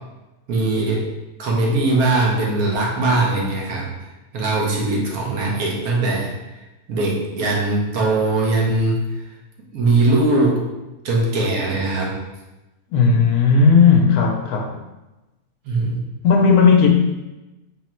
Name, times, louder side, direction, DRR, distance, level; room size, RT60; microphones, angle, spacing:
voice 1, 0.5-1.1 1.4-3.9 4.3-6.6 6.9-9.0 9.7-10.6 11.0-12.2 15.6-16.1, right 2 dB, 70° right, -2 dB, 1.2 m, -20 dB
voice 2, 12.9-14.8 16.2-16.9, left 5 dB, 75° left, 2 dB, 1.0 m, -14 dB
3.7 x 2.1 x 4.3 m, 1.0 s
omnidirectional pair, 1.6 m